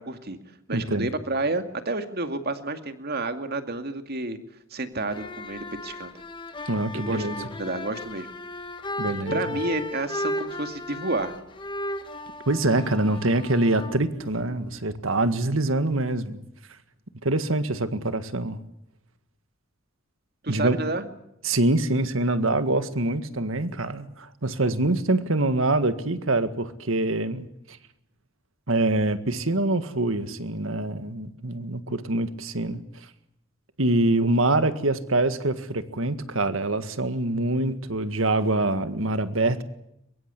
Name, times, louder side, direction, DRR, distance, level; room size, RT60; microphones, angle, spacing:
voice 1, 0.1-0.4 0.7-4.4 4.7-6.1 6.9-8.3 9.3-11.3 20.4-21.0, right 2 dB, 50° right, 2.3 m, -30 dB
voice 2, 0.7-1.1 6.7-7.3 9.0-9.4 12.5-16.4 17.2-18.6 20.5-20.8 21.4-27.8 28.7-33.1 33.8-39.6, right 2 dB, 70° right, 1.9 m, -25 dB
sound 1, 5.0-14.8, left 1 dB, 25° left, 1.6 m, -35 dB
23.0 x 22.5 x 8.4 m
head